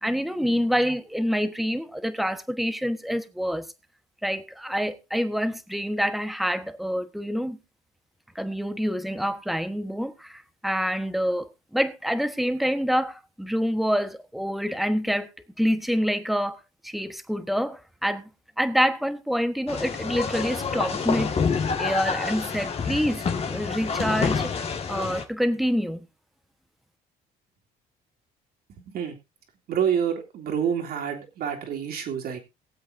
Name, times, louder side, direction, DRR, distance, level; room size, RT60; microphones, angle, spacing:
voice 1, 0.0-3.7 4.2-7.6 8.3-15.3 15.6-18.3 18.6-21.4 21.8-26.0, equal, ahead, 1.2 m, -27 dB
sound 1, 19.7-25.2, left 5 dB, 35° left, 1.9 m, -27 dB
voice 2, 29.7-32.4, right 8 dB, 65° right, 3.3 m, -27 dB
22.0 x 7.8 x 2.7 m
cardioid pair, 110°, 17 cm